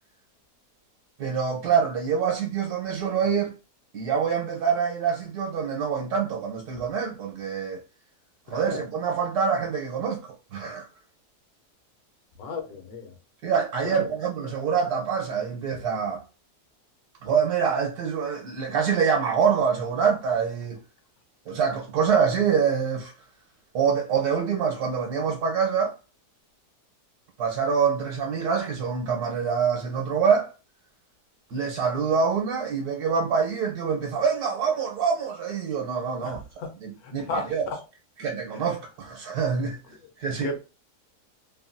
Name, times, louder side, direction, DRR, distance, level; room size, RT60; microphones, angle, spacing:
voice 1, 1.2-3.5 3.9-7.8 8.5-10.9 13.4-16.2 17.2-20.8 21.5-23.2 23.7-26.0 27.4-30.5 31.5-36.4 36.8-37.7 38.2-40.6, right 6 dB, 75° right, 1.2 m, -25 dB
voice 2, 8.5-8.8 12.4-13.1 13.8-14.0 36.2-36.3 37.0-37.8 38.5-38.6 40.4-40.6, left 4 dB, 70° left, 1.2 m, -34 dB
3.1 x 2.2 x 2.5 m
omnidirectional pair, 1.7 m